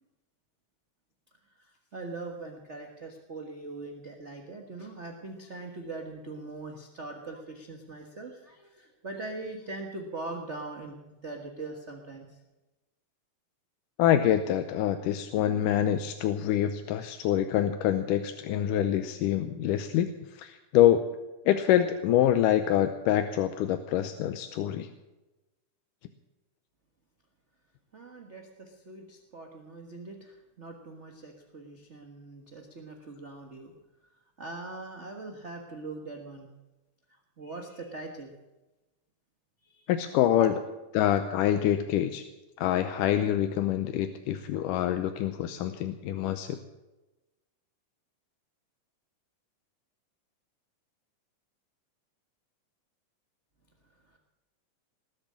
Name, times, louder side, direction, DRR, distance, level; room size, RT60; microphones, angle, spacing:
voice 1, 1.4-12.4 27.9-33.7 34.0-36.5 37.1-38.3 39.6-39.9 40.4-40.5 53.8-54.2, right 3 dB, 45° right, 2 dB, 0.9 m, -42 dB
voice 2, 14.0-21.1 21.5-24.9 39.9-40.5 41.0-42.2 42.6-46.6, left 11 dB, 85° left, 8 dB, 2.3 m, -26 dB
19.5 x 8.0 x 8.6 m, 1.1 s
omnidirectional pair, 3.7 m